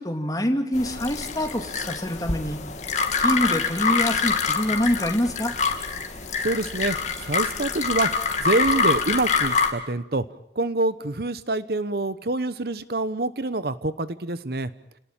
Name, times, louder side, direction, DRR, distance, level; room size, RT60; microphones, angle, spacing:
voice 1, 0.0-2.6 3.2-5.5, equal, 20° left, 5 dB, 2.5 m, -25 dB
sound 1, 0.7-9.7, left 5 dB, 40° left, 2.6 m, -25 dB
voice 2, 6.4-7.0 7.2-8.1 8.4-10.2 10.5-14.7, right 2 dB, 55° right, 15 dB, 0.9 m, -26 dB
30.0 x 18.5 x 8.9 m, 0.83 s
head